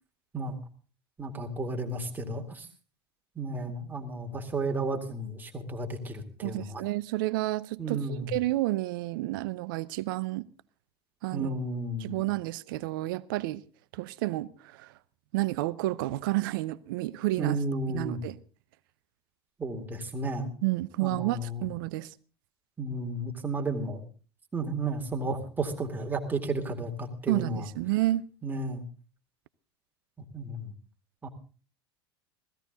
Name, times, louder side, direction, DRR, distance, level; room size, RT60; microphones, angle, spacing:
voice 1, 1.2-2.7 3.4-6.8 7.8-8.3 11.3-12.3 17.4-18.2 19.6-20.5 21.0-21.6 22.8-24.0 24.5-27.7 28.4-28.8 30.2-30.7 31.2-31.3, right 2 dB, 15° right, 2.2 m, -33 dB
voice 2, 6.4-10.5 11.2-11.5 12.0-13.6 13.9-14.9 15.3-17.6 17.9-18.4 20.6-22.1 27.3-28.3, right 17 dB, 55° right, 0.6 m, -30 dB
16.5 x 14.5 x 3.9 m
figure-of-eight pair, 75°, 14 cm